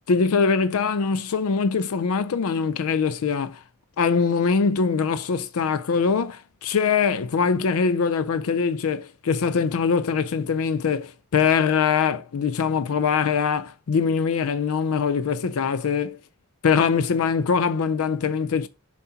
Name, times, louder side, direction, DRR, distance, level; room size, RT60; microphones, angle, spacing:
voice 1, 0.1-3.6 4.0-16.2 16.6-18.7, left 5 dB, 70° left, 0.4 m, -23 dB
7.3 x 2.7 x 5.6 m
head